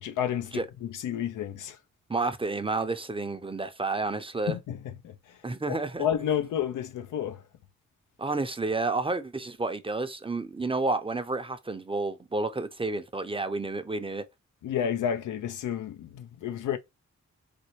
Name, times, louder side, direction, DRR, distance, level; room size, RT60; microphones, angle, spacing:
voice 1, 0.0-1.8 4.5-5.4 5.7-7.4 14.6-16.8, left 9 dB, 90° left, 0.5 m, -31 dB
voice 2, 2.1-4.6 5.4-6.1 8.2-14.2, right 3 dB, 20° right, 0.5 m, -30 dB
4.2 x 2.1 x 3.0 m
cardioid pair, 55°, 30 cm